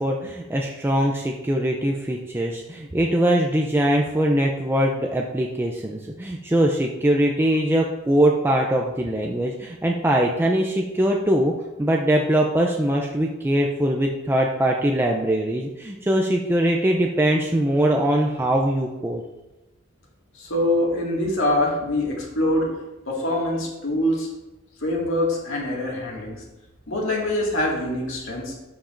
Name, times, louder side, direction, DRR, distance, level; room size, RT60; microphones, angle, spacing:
voice 1, 0.0-19.2, right 1 dB, 10° right, 0 dB, 0.4 m, -22 dB
voice 2, 20.4-22.7 23.1-24.3 24.8-26.4 26.9-28.6, left 1 dB, 70° left, -2 dB, 2.1 m, -24 dB
12.5 x 5.0 x 2.6 m, 1.0 s
head